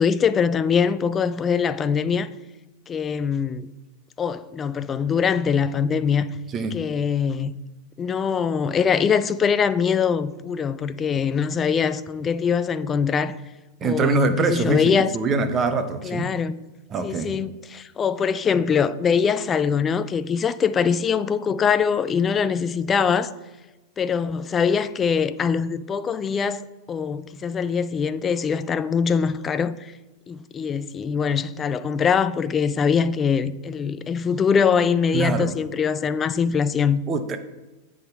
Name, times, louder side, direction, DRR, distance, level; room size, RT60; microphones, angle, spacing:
voice 1, 0.0-2.3 2.9-3.7 4.2-6.3 6.7-7.5 8.0-13.3 13.8-15.1 16.0-16.6 17.0-23.3 24.0-29.9 30.3-37.0, left 6 dB, 20° left, 0.3 m, -23 dB
voice 2, 13.8-16.3 16.9-17.3 35.1-35.6 37.1-37.4, right 4 dB, 25° right, 0.7 m, -24 dB
7.9 x 3.6 x 4.7 m
figure-of-eight pair, 90°, 0 cm